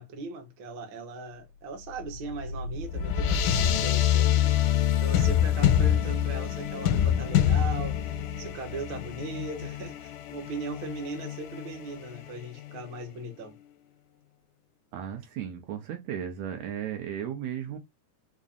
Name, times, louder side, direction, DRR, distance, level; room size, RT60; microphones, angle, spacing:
voice 1, 0.0-4.4 5.0-13.6, right 3 dB, 60° right, 1.3 m, -39 dB
sound 1, 2.0-12.8, left 10 dB, 85° left, 2.0 m, -26 dB
voice 2, 14.9-17.8, right 9 dB, 75° right, 1.8 m, -35 dB
5.1 x 2.6 x 2.4 m
omnidirectional pair, 3.5 m